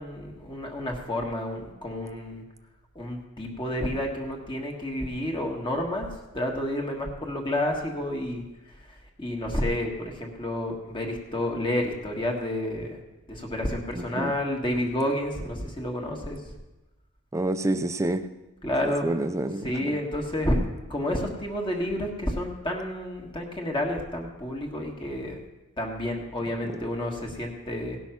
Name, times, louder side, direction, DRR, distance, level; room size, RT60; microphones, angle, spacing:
voice 1, 0.0-2.4 2.9-6.1 6.3-8.4 8.8-8.9 9.2-13.0 13.3-16.4 18.6-19.1 19.6-20.6 20.9-25.4 25.8-28.0, left 1 dB, 20° left, 1 dB, 1.5 m, -30 dB
voice 2, 13.9-14.3 17.3-18.3 18.8-20.0, right 1 dB, 15° right, 10 dB, 0.4 m, -28 dB
17.0 x 6.2 x 5.8 m, 1.1 s
head